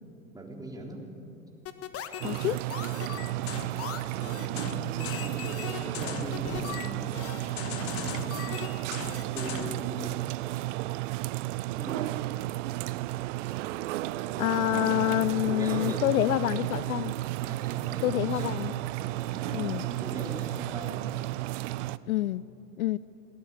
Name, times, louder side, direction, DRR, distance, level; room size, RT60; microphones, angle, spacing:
voice 1, 0.3-1.1 4.2-7.2 7.6-8.5 9.3-10.2 11.8-12.1 14.8-16.3 17.4-18.7 19.0-21.1, right 1 dB, 10° right, 3.6 m, -41 dB
sound 1, 1.7-9.8, left 9 dB, 30° left, 1.5 m, -38 dB
voice 2, 2.2-2.7 14.4-17.1 18.0-18.7 19.5-19.8 22.1-22.5 22.8-23.0, left 15 dB, 65° left, 0.6 m, -27 dB
sound 2, 2.2-22.0, right 18 dB, 50° right, 0.6 m, -33 dB
21.0 x 18.0 x 8.4 m
hypercardioid pair, 95°, 46 cm